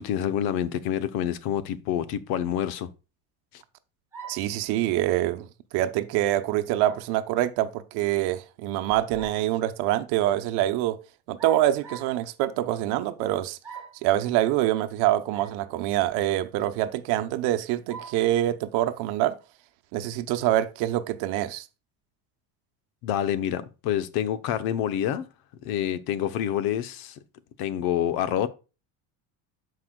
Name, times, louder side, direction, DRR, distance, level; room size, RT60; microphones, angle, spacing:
voice 1, 0.0-2.9 23.0-25.3 25.6-27.2 27.6-28.5, left 10 dB, 65° left, 1.0 m, -27 dB
sound 1, 4.1-4.6 6.8-7.1 8.9-9.5 11.4-12.2 13.6-14.1 15.3-15.6 16.1-16.2 17.9-18.3, right 6 dB, 5° right, 3.8 m, -42 dB
voice 2, 4.3-5.5 5.7-11.0 11.3-13.6 14.0-19.4 19.9-21.7, right 13 dB, 75° right, 0.9 m, -25 dB
14.0 x 4.8 x 2.3 m
cardioid pair, 175°, 39 cm